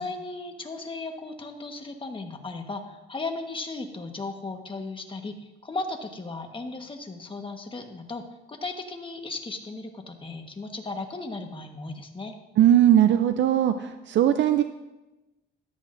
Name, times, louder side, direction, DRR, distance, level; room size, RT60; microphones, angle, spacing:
voice 1, 0.0-12.3, left 3 dB, 25° left, 4 dB, 1.5 m, -36 dB
voice 2, 12.6-14.6, right 11 dB, 65° right, 9 dB, 0.6 m, -19 dB
13.5 x 12.0 x 2.7 m, 1.0 s
cardioid pair, 90°, 20 cm